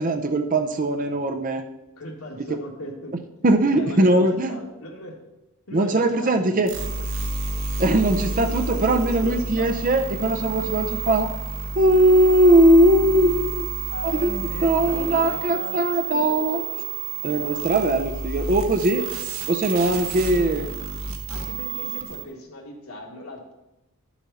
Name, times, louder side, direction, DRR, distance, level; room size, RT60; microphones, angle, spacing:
voice 1, 0.0-1.6 3.4-4.6 5.7-6.7 7.8-11.3 11.8-13.7 14.0-14.3 14.6-16.6 17.2-19.1 19.5-20.7, right 1 dB, 35° right, 6 dB, 0.6 m, -20 dB
voice 2, 2.0-3.1 3.8-4.2 4.5-5.1 5.7-7.0 8.2-9.7 13.9-15.8 16.1-16.6 17.4-17.5 19.2-19.3 21.3-23.5, equal, 75° left, 0 dB, 2.1 m, -37 dB
sound 1, 6.7-22.2, right 4 dB, 60° right, 1.2 m, -30 dB
11.0 x 7.2 x 4.1 m, 0.94 s
head